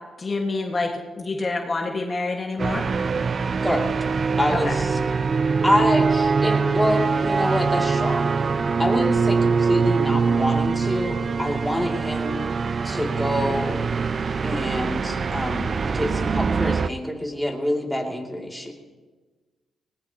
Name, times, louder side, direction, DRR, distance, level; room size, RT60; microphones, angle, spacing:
voice 1, 0.2-2.9 4.5-4.8, left 3 dB, 35° left, 1 dB, 1.6 m, -27 dB
sound 1, 2.6-16.9, right 5 dB, 45° right, 0.4 m, -23 dB
voice 2, 4.4-5.0 5.6-8.3 8.8-12.4 12.8-13.8 14.4-18.7, left 1 dB, ahead, -1 dB, 2.5 m, -26 dB
19.5 x 18.0 x 2.9 m, 1.3 s
cardioid pair, 75°, 0 cm